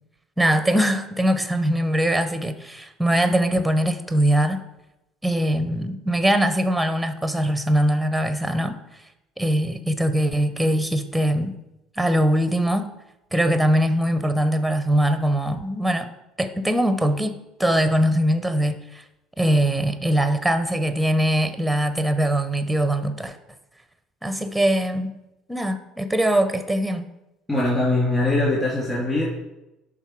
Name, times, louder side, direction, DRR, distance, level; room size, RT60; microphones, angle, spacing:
voice 1, 0.4-4.6 5.2-8.8 9.4-11.6 12.0-12.9 13.3-16.1 16.4-19.0 19.4-23.4 24.2-25.2 25.5-27.0, right 1 dB, ahead, 9 dB, 0.8 m, -22 dB
voice 2, 27.5-29.2, left 2 dB, 15° left, -7 dB, 3.0 m, -22 dB
11.0 x 3.8 x 4.7 m, 0.92 s
hypercardioid pair, 60°, 0 cm